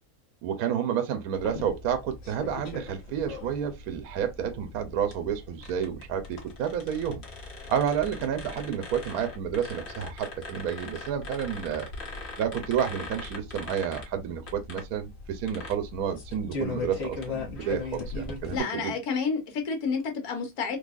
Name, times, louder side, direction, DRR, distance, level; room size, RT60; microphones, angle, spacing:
voice 1, 0.4-7.2 7.7-11.9 12.4-18.9, right 8 dB, 75° right, 1.1 m, -30 dB
sound 1, 1.3-18.6, left 3 dB, 45° left, 1.2 m, -39 dB
voice 2, 18.5-20.8, left 5 dB, 75° left, 1.5 m, -30 dB
3.8 x 2.8 x 2.4 m
omnidirectional pair, 1.6 m